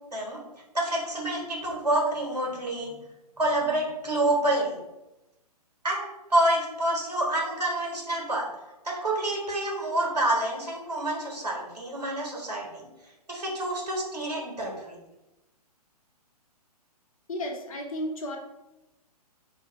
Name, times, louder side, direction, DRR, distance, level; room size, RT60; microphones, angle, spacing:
voice 1, 0.7-3.0 3.4-4.8 5.8-8.5 8.8-12.8 13.3-15.0, right 1 dB, 80° right, -1 dB, 1.3 m, -28 dB
voice 2, 17.3-18.4, left 1 dB, 60° left, 2 dB, 0.9 m, -33 dB
2.8 x 2.7 x 4.1 m, 0.96 s
figure-of-eight pair, 125°, 20 cm